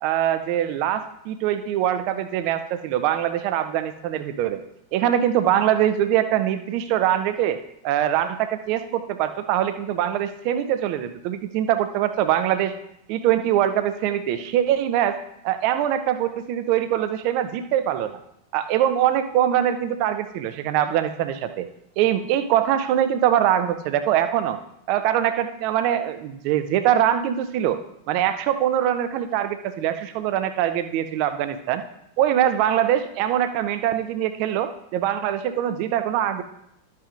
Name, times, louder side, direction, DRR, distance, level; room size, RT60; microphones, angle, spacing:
voice 1, 0.0-4.6 4.9-7.6 7.8-12.7 13.1-15.2 15.4-18.2 18.5-21.7 22.0-24.6 24.9-27.8 28.1-31.8 32.2-36.4, right 11 dB, 45° right, 10 dB, 0.7 m, -23 dB
12.5 x 8.3 x 2.5 m, 0.77 s
figure-of-eight pair, 90°, 0 cm